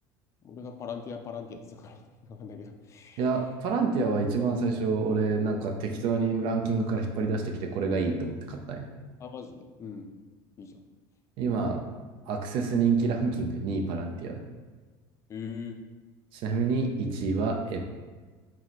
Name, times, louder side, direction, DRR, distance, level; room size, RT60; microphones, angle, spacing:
voice 1, 0.4-3.2 9.2-10.1 10.6-10.8 15.3-15.8, left 6 dB, 30° left, 5 dB, 0.4 m, -41 dB
voice 2, 3.2-8.9 11.4-11.8 12.3-14.4 16.3-17.8, right 4 dB, 60° right, 2 dB, 0.5 m, -28 dB
4.4 x 2.1 x 4.0 m, 1.4 s
cardioid pair, 135°, 10 cm